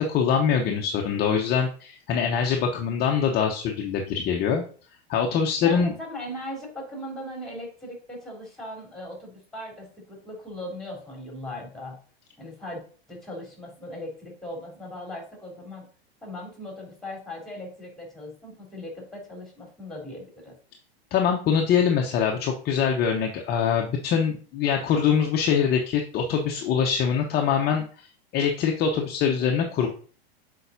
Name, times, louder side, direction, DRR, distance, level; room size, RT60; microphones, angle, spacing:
voice 1, 0.1-4.6 5.1-5.9 21.1-28.1 28.3-29.9, left 7 dB, 30° left, 2 dB, 0.8 m, -23 dB
voice 2, 5.6-12.0 12.4-15.8 16.2-20.6, left 1 dB, ahead, -1 dB, 3.2 m, -38 dB
8.0 x 4.7 x 2.6 m, 0.42 s
figure-of-eight pair, 95°, 32 cm